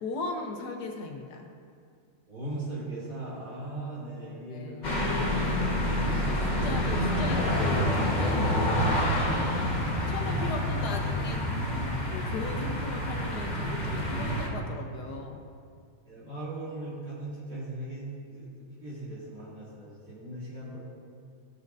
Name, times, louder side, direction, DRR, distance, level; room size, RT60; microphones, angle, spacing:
voice 1, 0.0-1.4 4.5-5.3 5.8-9.6 10.1-11.4 12.1-15.4, left 3 dB, 60° left, 2 dB, 1.1 m, -38 dB
voice 2, 2.3-5.1 5.8-6.6 16.1-20.8, right 2 dB, 65° right, -10 dB, 3.2 m, -39 dB
sound 1, 4.8-14.5, left 1 dB, 25° left, 1.1 m, -27 dB
16.5 x 6.5 x 2.6 m, 2.2 s
omnidirectional pair, 2.4 m